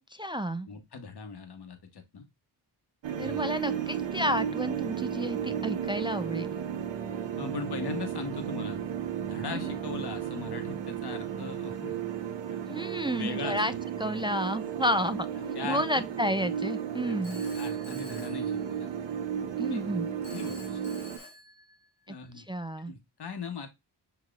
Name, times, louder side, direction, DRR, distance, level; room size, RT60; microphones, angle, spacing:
voice 1, 0.1-0.7 3.2-6.5 9.5-9.7 12.7-13.7 14.0-17.5 19.6-20.1 22.4-22.9, equal, 10° right, 0.3 m, -31 dB
voice 2, 0.7-2.2 3.2-3.4 7.4-8.8 9.2-12.0 12.4-12.6 13.1-13.6 15.5-16.1 17.5-18.9 19.4-19.8 20.3-21.0 22.1-22.5 22.8-23.7, left 5 dB, 60° left, 1.1 m, -40 dB
sound 1, 3.0-21.2, right 8 dB, 80° right, 0.7 m, -34 dB
Telephone, 17.2-19.2 20.2-22.2, left 2 dB, 85° left, 2.0 m, -49 dB
6.9 x 2.9 x 2.4 m
cardioid pair, 50°, 44 cm